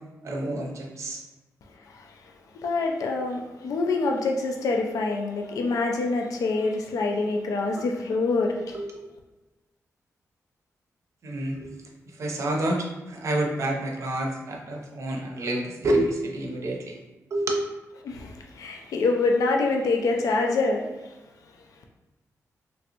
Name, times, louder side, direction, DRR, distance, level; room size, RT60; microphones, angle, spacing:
voice 1, 0.2-1.2 8.7-8.8 11.2-11.7 12.2-16.9 17.3-17.6, right 1 dB, 60° right, 1 dB, 0.6 m, -28 dB
voice 2, 1.8-2.3 2.6-8.8 18.0-21.2, left 3 dB, 85° left, 1 dB, 0.4 m, -26 dB
3.1 x 2.5 x 2.8 m, 1.1 s
wide cardioid pair, 105°, 6 cm